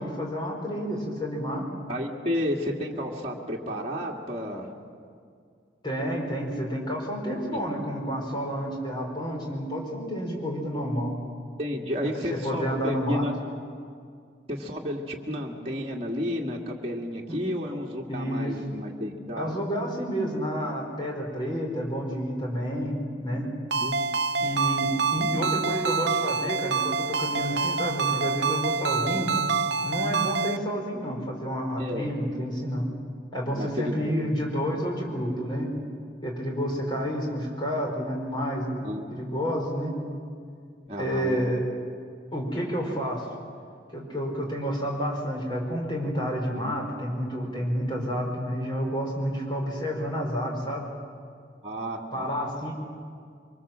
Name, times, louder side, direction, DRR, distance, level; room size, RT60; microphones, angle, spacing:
voice 1, 0.0-1.6 5.8-11.2 12.3-13.3 17.3-17.4 18.1-18.6 19.3-23.5 24.4-29.3 29.8-32.8 33.3-35.7 36.2-38.8 39.1-39.9 41.0-41.6 42.3-43.3 43.9-50.9 52.1-52.7, equal, 25° left, 0 dB, 4.9 m, -30 dB
voice 2, 1.9-4.7 7.5-7.7 11.6-13.3 14.5-19.6 23.8-24.0 25.2-25.3 31.8-32.1 33.5-34.3 38.8-39.1 40.9-41.5 51.6-52.3, equal, 30° right, -3 dB, 2.2 m, -32 dB
Ringtone, 23.7-30.6, right 5 dB, 65° right, 0.6 m, -27 dB
24.5 x 24.0 x 7.5 m, 2.2 s
head